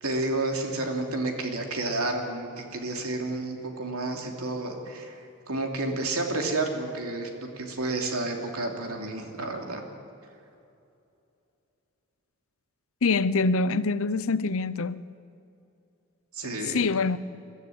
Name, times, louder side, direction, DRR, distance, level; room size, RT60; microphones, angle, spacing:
voice 1, 0.0-9.8 16.3-16.9, right 2 dB, 80° right, 2.9 m, -31 dB
voice 2, 13.0-15.0 16.6-17.2, left 3 dB, 65° left, 0.7 m, -25 dB
22.5 x 13.0 x 8.6 m
head